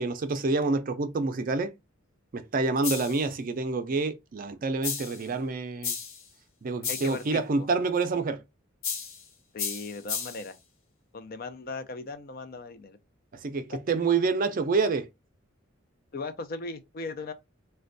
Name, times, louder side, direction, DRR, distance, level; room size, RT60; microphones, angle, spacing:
voice 1, 0.0-1.7 2.3-6.0 6.6-8.4 13.3-15.1, right 3 dB, 45° right, 0.4 m, -27 dB
sound 1, 2.8-3.3 4.8-5.3 5.8-6.3 6.8-7.2 8.8-9.2 9.6-10.5, left 6 dB, 90° left, 0.7 m, -33 dB
voice 2, 6.9-7.7 9.5-10.6 11.1-13.0 13.7-13.8 16.1-17.3, left 3 dB, 50° left, 0.5 m, -38 dB
4.2 x 2.2 x 2.5 m
head